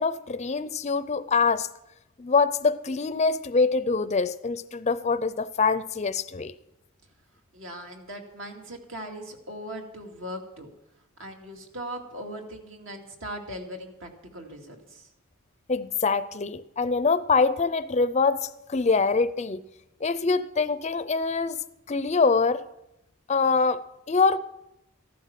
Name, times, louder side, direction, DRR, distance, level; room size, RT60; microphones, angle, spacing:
voice 1, 0.0-1.7 2.2-6.5 15.7-19.6 20.0-21.6 21.9-22.6 23.3-24.4, left 4 dB, 30° left, 0.5 m, -24 dB
voice 2, 7.5-10.7 11.2-15.1, equal, 65° right, 2.3 m, -39 dB
14.5 x 12.0 x 5.9 m
head